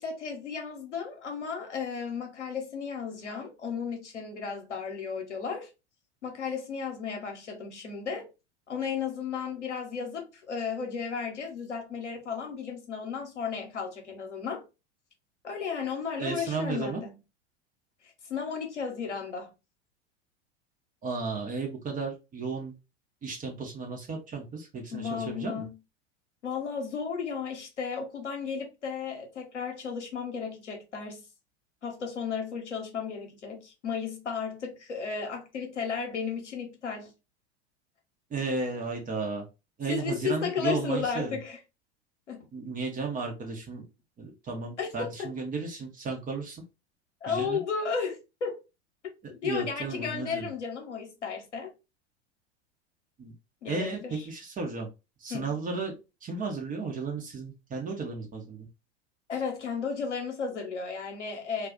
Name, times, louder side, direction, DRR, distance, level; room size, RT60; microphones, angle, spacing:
voice 1, 0.0-5.7 6.2-8.3 8.7-14.6 15.4-17.2 18.0-19.5 24.9-25.7 26.4-31.2 31.8-37.1 39.9-41.6 42.3-42.4 44.8-45.1 47.2-48.6 49.3-51.7 53.6-54.2 55.3-55.5 59.3-61.7, left 6 dB, 85° left, 1.0 m, -34 dB
voice 2, 16.2-17.0 21.0-22.7 23.2-25.6 38.3-39.4 39.8-41.4 42.5-43.8 44.2-46.6 47.3-47.6 49.4-50.5 53.2-53.3 53.6-54.9 55.2-55.9 56.2-58.7, right 4 dB, 25° right, 0.8 m, -34 dB
2.4 x 2.4 x 3.7 m
hypercardioid pair, 90°, 34 cm